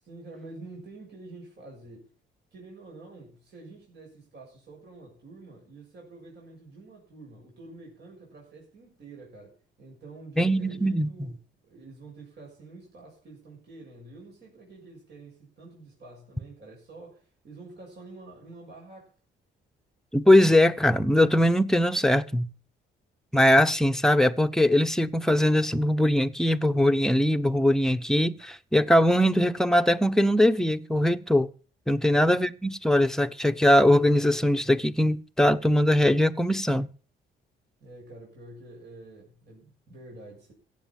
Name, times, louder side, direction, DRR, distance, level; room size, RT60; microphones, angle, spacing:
voice 1, 0.0-2.1 2.5-11.4 11.6-19.1 37.8-40.5, right 2 dB, 60° right, 7.1 m, -47 dB
voice 2, 10.4-11.1 20.1-22.5 23.3-31.5 31.9-36.9, left 1 dB, 5° left, 1.0 m, -21 dB
16.0 x 8.2 x 7.4 m
cardioid pair, 90°, 20 cm